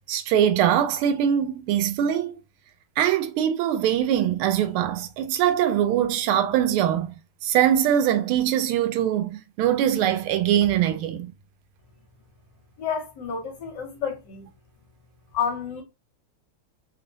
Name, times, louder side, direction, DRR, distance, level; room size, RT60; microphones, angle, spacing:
voice 1, 0.1-2.4 3.0-9.3 9.6-11.3, right 10 dB, 85° right, 1.5 m, -22 dB
voice 2, 12.8-14.5 15.3-15.8, left 7 dB, 65° left, 1.3 m, -30 dB
3.5 x 2.1 x 2.6 m
omnidirectional pair, 2.3 m